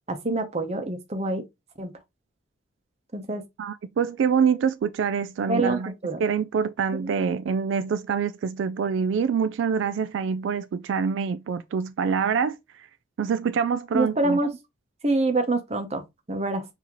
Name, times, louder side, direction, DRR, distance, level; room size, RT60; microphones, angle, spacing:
voice 1, 0.1-1.4 1.8-1.9 3.1-3.4 5.5-6.2 6.9-7.1 13.9-14.5 15.0-16.7, right 2 dB, 35° right, 0.8 m, -26 dB
voice 2, 3.6-5.9 6.2-12.6 13.2-14.4, right 6 dB, 80° right, 0.3 m, -25 dB
5.9 x 2.8 x 3.0 m
head